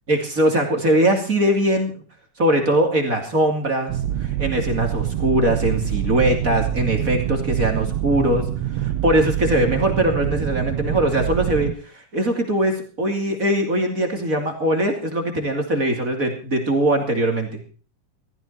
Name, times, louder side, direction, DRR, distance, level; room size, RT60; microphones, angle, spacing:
voice 1, 0.1-1.9 2.4-3.9 4.2-8.4 8.8-17.6, right 1 dB, 25° right, 3 dB, 2.7 m, -21 dB
sound 1, 3.9-11.7, right 12 dB, 80° right, 1.5 m, -25 dB
15.5 x 15.0 x 4.2 m, 0.40 s
omnidirectional pair, 4.0 m